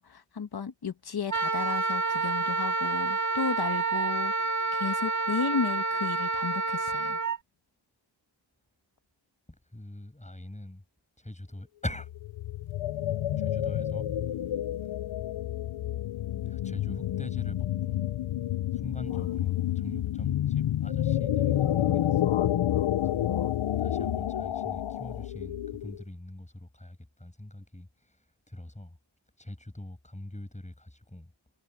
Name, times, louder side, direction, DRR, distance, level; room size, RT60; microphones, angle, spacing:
voice 1, 0.0-4.3 4.7-7.2, left 5 dB, 55° left, 1.3 m, -33 dB
Wind instrument woodwind instrument, 1.3-7.4, right 3 dB, 40° right, 2.3 m, -28 dB
voice 2, 9.6-10.8 11.2-12.1 13.1-14.5 14.8-14.9 16.4-18.1 18.7-22.4 23.0-23.3 23.8-29.0 29.4-31.3, left 1 dB, 15° left, 7.4 m, -43 dB
sound 1, 11.9-26.0, left 12 dB, 85° left, 0.7 m, -29 dB
wide cardioid pair, 80°, 46 cm